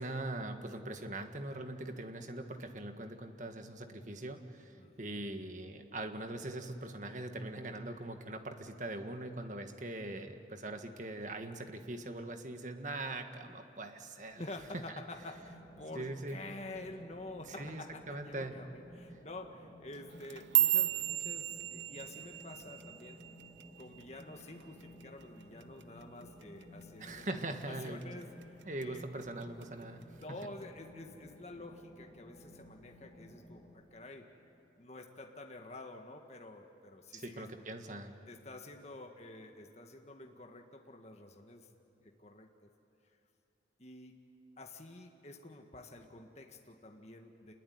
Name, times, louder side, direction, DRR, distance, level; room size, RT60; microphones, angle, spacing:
voice 1, 0.0-14.4 14.7-15.0 15.9-16.4 17.5-17.8 18.1-18.5 27.0-28.0 28.6-30.0 37.1-38.1, right 2 dB, 45° right, 6 dB, 1.7 m, -41 dB
voice 2, 4.8-5.2 14.4-23.2 23.8-28.3 28.8-29.0 30.2-34.2 34.8-37.5 38.3-41.7 42.0-42.7 43.8-44.1 44.6-47.5, left 2 dB, 40° left, 3 dB, 1.6 m, -49 dB
sound 1, 15.1-33.8, equal, 15° left, 7.8 m, -55 dB
sound 2, 20.1-24.5 24.8-25.2 25.6-26.0 26.4-26.6 27.2-27.6 28.0-28.8 29.2-29.6 30.4-30.5, right 13 dB, 80° right, 0.8 m, -33 dB
28.0 x 21.0 x 9.5 m, 2.9 s
head